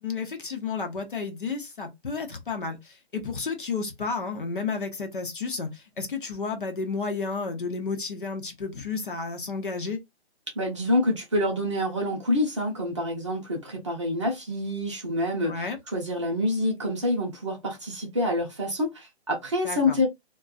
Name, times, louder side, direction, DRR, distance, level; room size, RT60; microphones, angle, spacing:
voice 1, 0.0-10.0 15.5-15.8 19.6-20.0, left 4 dB, 50° left, 0.7 m, -32 dB
voice 2, 10.5-20.1, left 1 dB, 30° right, 0.8 m, -27 dB
2.4 x 2.2 x 2.4 m
hypercardioid pair, 175°, 33 cm